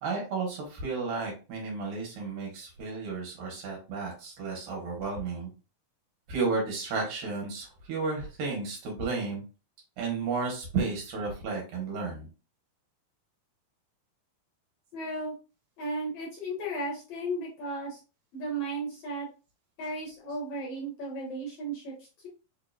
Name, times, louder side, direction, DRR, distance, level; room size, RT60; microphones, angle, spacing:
voice 1, 0.0-5.5 6.3-9.4 10.0-12.3, right 4 dB, 70° right, -1 dB, 3.0 m, -33 dB
voice 2, 14.9-15.3 15.8-18.0 18.3-19.3 19.8-22.3, right 1 dB, 60° left, -5 dB, 2.2 m, -35 dB
5.9 x 2.8 x 2.4 m, 0.33 s
omnidirectional pair, 4.3 m